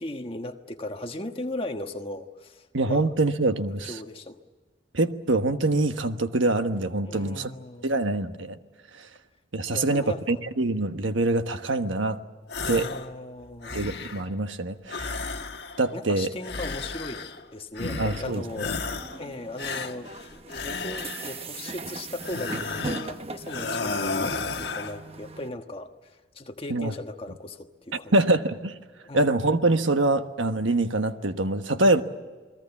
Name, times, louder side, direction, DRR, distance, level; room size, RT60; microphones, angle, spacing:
voice 1, 0.0-3.1 3.9-4.4 7.0-8.0 9.7-10.4 12.7-13.8 15.9-18.7 19.2-28.1 29.0-29.3, left 1 dB, 30° left, 1.4 m, -37 dB
voice 2, 2.7-4.0 4.9-7.5 7.8-8.6 9.0-9.1 9.5-12.2 12.7-12.9 13.7-15.2 15.8-16.3 18.0-18.6 26.7-26.9 28.1-28.7 29.1-32.0, right 2 dB, 80° right, 1.3 m, -24 dB
sound 1, 12.5-13.1 13.4-14.3 14.9-15.9 16.4-17.4 17.8-18.3 18.6-19.2 19.6-21.4 22.2-23.1 23.5-25.0, left 4 dB, 55° left, 1.4 m, -33 dB
sound 2, 17.8-25.5, right 3 dB, 30° right, 0.8 m, -40 dB
29.0 x 21.0 x 7.2 m
head